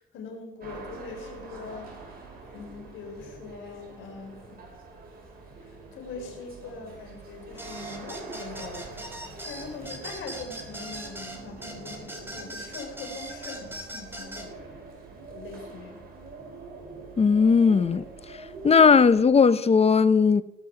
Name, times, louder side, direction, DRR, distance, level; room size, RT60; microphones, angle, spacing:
voice 1, 0.0-1.9 2.5-4.6 5.6-14.6 15.3-16.1, left 4 dB, 85° left, 3.8 m, -42 dB
sound 1, 0.6-19.2, right 3 dB, 50° right, 5.2 m, -44 dB
sound 2, 7.6-14.5, right 1 dB, 10° right, 2.9 m, -40 dB
voice 2, 17.2-18.0 18.6-20.4, left 5 dB, 30° left, 0.6 m, -18 dB
18.0 x 6.1 x 6.8 m
cardioid pair, 90°, 20 cm